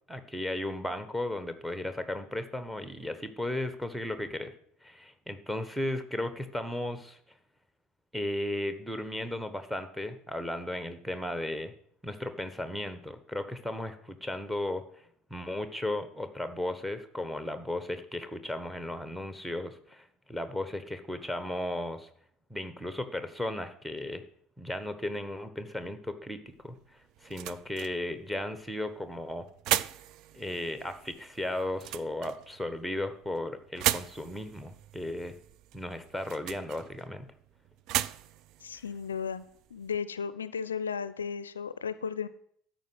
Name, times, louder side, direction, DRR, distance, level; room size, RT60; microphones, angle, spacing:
voice 1, 0.1-4.5 4.8-7.2 8.1-11.7 12.0-15.0 15.3-22.1 22.5-24.2 24.6-29.4 30.3-35.4 35.7-37.3, left 1 dB, 5° right, 10 dB, 1.3 m, -35 dB
sound 1, 26.5-40.0, right 14 dB, 50° right, 0.4 m, -38 dB
voice 2, 38.6-39.4 39.7-42.3, left 6 dB, 75° left, 15 dB, 0.4 m, -34 dB
13.0 x 5.2 x 7.9 m, 0.64 s
figure-of-eight pair, 65°, 0 cm